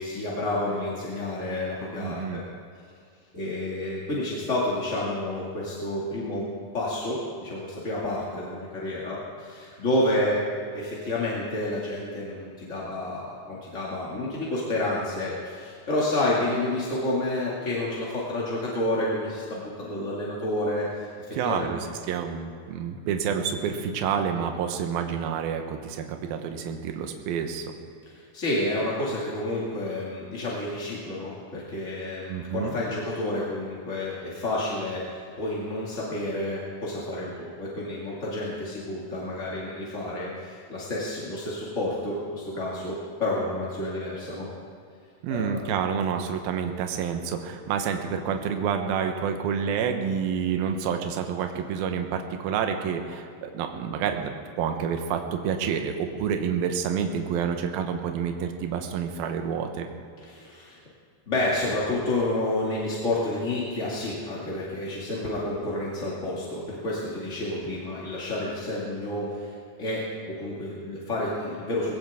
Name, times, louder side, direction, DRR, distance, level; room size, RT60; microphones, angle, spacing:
voice 1, 0.0-2.4 3.3-10.5 10.7-21.7 28.0-44.5 45.3-45.6 60.2-60.8 61.3-69.5 69.8-71.9, left 1 dB, 30° left, -6 dB, 1.6 m, -30 dB
voice 2, 2.0-2.4 21.3-21.8 22.1-27.7 32.3-32.8 45.2-59.9, right 7 dB, 70° right, 5 dB, 2.7 m, -28 dB
21.0 x 17.0 x 3.7 m, 2.3 s
omnidirectional pair, 4.9 m